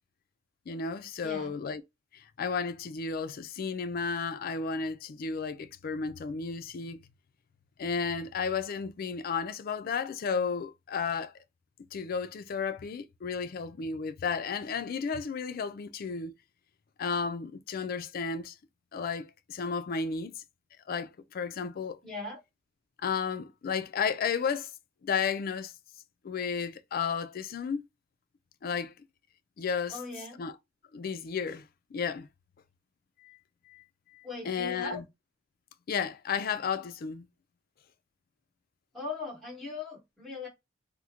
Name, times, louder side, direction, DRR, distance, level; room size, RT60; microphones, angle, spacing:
voice 1, 0.7-1.8 2.1-7.0 7.8-11.3 11.9-16.3 17.0-18.6 18.9-20.3 20.9-22.0 23.0-24.7 25.0-25.7 26.2-27.8 28.6-28.9 29.6-30.0 30.4-30.5 30.9-32.3 33.2-33.4 33.7-33.8 34.1-35.0 35.9-37.3, left 5 dB, 50° left, 0.4 m, -33 dB
voice 2, 1.2-1.5 22.0-22.4 29.9-30.4 34.2-35.0 38.9-40.5, left 3 dB, ahead, 1.4 m, -39 dB
3.6 x 2.1 x 2.8 m
head